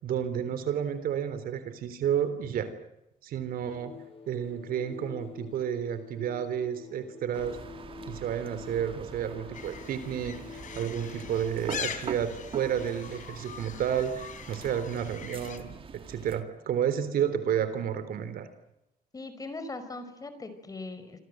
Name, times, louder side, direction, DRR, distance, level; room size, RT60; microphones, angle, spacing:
voice 1, 0.0-2.7 3.2-4.0 4.3-7.6 8.1-18.5, right 9 dB, 80° right, 12 dB, 3.8 m, -31 dB
sound 1, 3.6-12.0, left 7 dB, 40° left, 5.3 m, -48 dB
sound 2, 7.3-16.4, right 5 dB, 40° right, 2.1 m, -44 dB
sound 3, 9.5-15.6, left 8 dB, 60° left, 3.5 m, -42 dB
voice 2, 19.1-21.2, left 3 dB, 25° left, 10 dB, 5.2 m, -40 dB
27.5 x 26.5 x 7.9 m, 0.85 s
cardioid pair, 130°, 15 cm